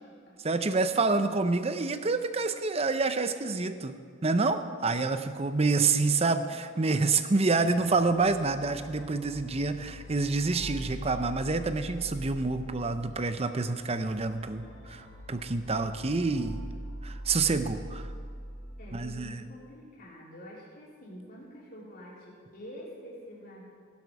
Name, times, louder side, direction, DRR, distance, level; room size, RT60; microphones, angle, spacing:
voice 1, 0.4-3.9 4.2-16.6 17.0-18.1 18.9-19.4, right 3 dB, 30° right, 10 dB, 0.7 m, -28 dB
voice 2, 5.9-6.5 16.4-17.0 18.8-23.6, equal, 45° left, -5 dB, 3.7 m, -47 dB
sound 1, 7.6-19.3, equal, 80° left, 3.4 m, -43 dB
16.5 x 11.5 x 4.8 m, 2.2 s
head